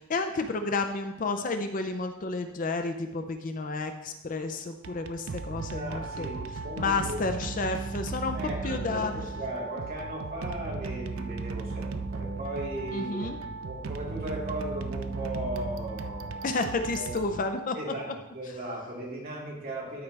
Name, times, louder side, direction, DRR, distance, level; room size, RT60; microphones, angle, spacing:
voice 1, 0.0-6.3 6.8-8.4 8.6-9.1 12.9-13.4 16.4-17.8, left 3 dB, 40° left, 7 dB, 0.5 m, -31 dB
sound 1, 4.7-17.9, right 4 dB, 75° right, 0.5 m, -36 dB
voice 2, 5.6-7.2 8.3-16.6 16.9-17.2 17.7-20.0, right 1 dB, 45° right, -4 dB, 2.4 m, -37 dB
12.5 x 4.7 x 3.3 m, 0.93 s
head